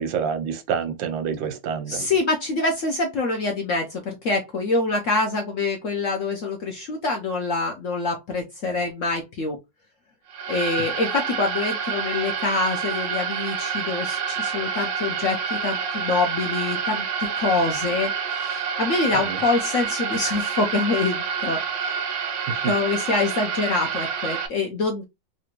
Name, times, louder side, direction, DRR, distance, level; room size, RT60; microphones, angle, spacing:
voice 1, 0.0-2.1 19.3-19.4, right 7 dB, 90° right, 1.4 m, -27 dB
voice 2, 1.9-9.6 10.5-21.6 22.6-25.0, left 3 dB, 65° left, 0.7 m, -25 dB
sound 1, 10.3-24.5, right 6 dB, 65° right, 0.7 m, -28 dB
3.3 x 2.6 x 2.9 m
omnidirectional pair, 2.0 m